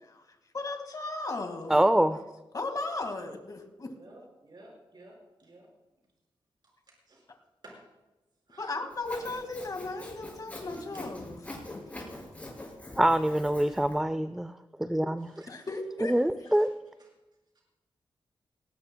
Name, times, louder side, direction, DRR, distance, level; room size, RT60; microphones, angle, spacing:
voice 1, 0.5-2.0 2.5-3.9 8.6-11.8 15.5-16.1, left 2 dB, 40° left, 1.9 m, -36 dB
voice 2, 1.7-2.2 13.0-14.5 14.8-15.3 16.0-16.7, right 1 dB, 5° right, 0.4 m, -25 dB
voice 3, 3.9-5.7 7.1-7.2 7.6-7.8 8.5-8.8 9.2-9.4 10.6-11.3 13.2-13.4 13.6-13.8 15.2-15.7 16.1-16.2 16.5-16.7 17.0-17.1, right 1 dB, 50° right, 5.2 m, -53 dB
Sawing, 8.9-14.0, left 1 dB, 15° left, 5.5 m, -44 dB
19.5 x 18.0 x 2.3 m
wide cardioid pair, 120°, 9 cm